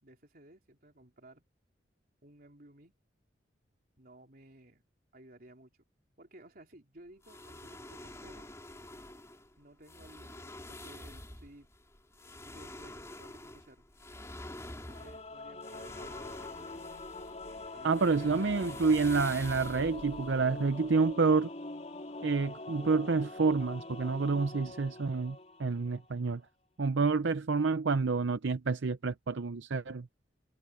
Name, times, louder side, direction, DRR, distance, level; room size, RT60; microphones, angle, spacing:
voice 1, 0.0-1.4 2.2-2.9 4.0-4.8 5.1-5.7 6.2-8.5 9.6-11.7 12.5-13.9 14.8-16.4 17.7-18.3, right 1 dB, 50° right, 3.6 m, -56 dB
sound 1, 7.2-21.1, left 1 dB, 15° left, 2.8 m, -47 dB
Singing / Musical instrument, 14.9-26.1, left 2 dB, 35° left, 4.0 m, -44 dB
voice 2, 17.8-21.5 22.2-26.4 26.8-30.1, right 4 dB, 85° right, 0.7 m, -28 dB
head